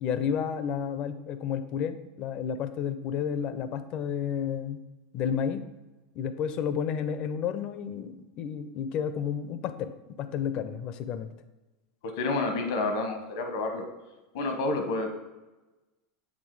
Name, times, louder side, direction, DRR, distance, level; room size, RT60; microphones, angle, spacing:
voice 1, 0.0-4.8 5.1-5.6 6.2-11.3, left 8 dB, 45° left, 12 dB, 0.5 m, -31 dB
voice 2, 12.0-13.9 14.3-15.1, left 3 dB, 75° left, 5 dB, 1.1 m, -29 dB
7.5 x 3.7 x 4.7 m, 1.1 s
supercardioid pair, 140°, 2 cm